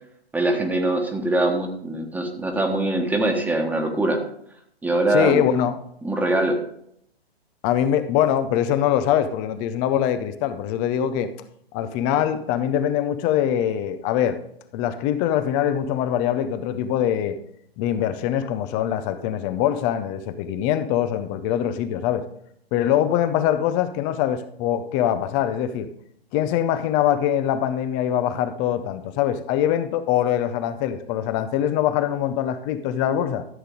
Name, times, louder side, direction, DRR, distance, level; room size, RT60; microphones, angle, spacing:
voice 1, 0.3-4.2 4.8-5.6 6.0-6.6, right 2 dB, 5° right, 3 dB, 1.2 m, -23 dB
voice 2, 5.1-5.8 7.6-11.3 11.7-14.4 14.7-17.4 17.8-22.2 22.7-25.9 26.3-33.4, left 10 dB, 15° left, 12 dB, 0.4 m, -23 dB
14.0 x 8.0 x 3.7 m, 0.69 s
figure-of-eight pair, 125°, 31 cm